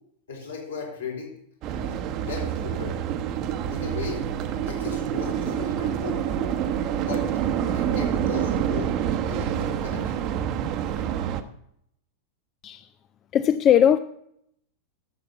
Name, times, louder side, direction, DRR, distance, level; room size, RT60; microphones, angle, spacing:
voice 1, 0.3-1.3 1.7-3.0 3.7-4.3 4.6-6.5 7.1-7.3 7.6-8.9 9.2-10.3, left 4 dB, 65° left, 4.8 m, -36 dB
sound 1, 1.6-11.4, right 9 dB, 40° right, 0.9 m, -27 dB
voice 2, 13.3-14.0, left 9 dB, 30° left, 0.4 m, -19 dB
12.0 x 7.1 x 7.2 m
figure-of-eight pair, 90°, 0 cm